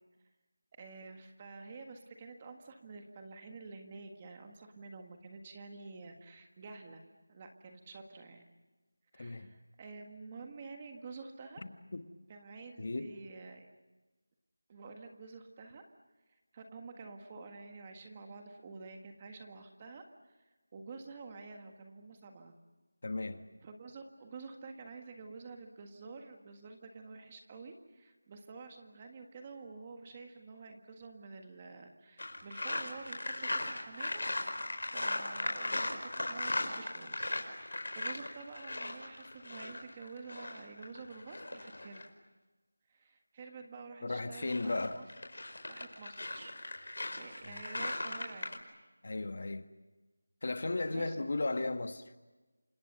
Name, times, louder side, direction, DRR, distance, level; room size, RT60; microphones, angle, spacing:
voice 1, 0.8-7.0 7.3-8.5 9.1-11.6 12.3-13.7 14.7-15.8 16.3-20.0 20.4-20.5 20.7-22.5 23.6-34.2 34.9-42.1 42.9-45.1 45.7-46.5 46.8-48.6 50.9-51.2, right 4 dB, 15° right, 1.6 m, -49 dB
voice 2, 9.2-9.5 11.9-12.0 12.8-13.1 23.0-23.4 44.0-45.0 47.4-47.8 49.0-49.7 50.4-52.1, left 2 dB, 45° left, 1.6 m, -35 dB
sound 1, 32.2-42.1 44.2-48.6, left 2 dB, 65° left, 4.9 m, -38 dB
29.0 x 26.5 x 6.8 m
figure-of-eight pair, 175°, 0 cm